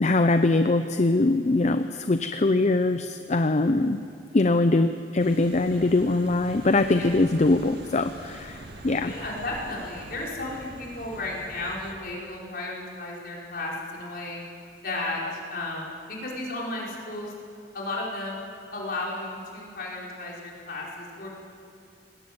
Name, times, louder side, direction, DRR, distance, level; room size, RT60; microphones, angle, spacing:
voice 1, 0.0-4.0 4.3-9.1, left 2 dB, 40° left, 9 dB, 0.6 m, -22 dB
sound 1, 5.2-11.9, right 1 dB, 65° right, 1.9 m, -45 dB
voice 2, 9.0-14.4 14.8-17.3 17.7-18.4 18.7-21.3, left 2 dB, 60° left, -4 dB, 4.9 m, -34 dB
20.0 x 17.0 x 7.9 m, 2.4 s
head